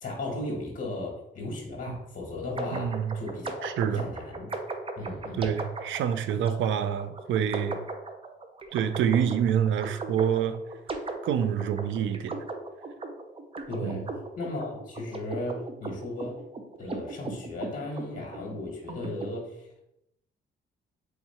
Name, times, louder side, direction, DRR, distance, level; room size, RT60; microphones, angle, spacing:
voice 1, 0.0-4.5 5.0-5.5 13.7-14.0 14.4-16.4 16.8-19.7, left 2 dB, 40° left, -1 dB, 1.4 m, -36 dB
sound 1, 2.6-19.3, right 3 dB, 30° right, 0.6 m, -38 dB
voice 2, 2.7-3.1 3.6-4.1 5.3-7.8 8.7-10.6 11.2-12.4 13.8-14.0, right 8 dB, 75° right, 11 dB, 0.4 m, -27 dB
3.6 x 2.9 x 4.3 m, 0.81 s
cardioid pair, 90°, 20 cm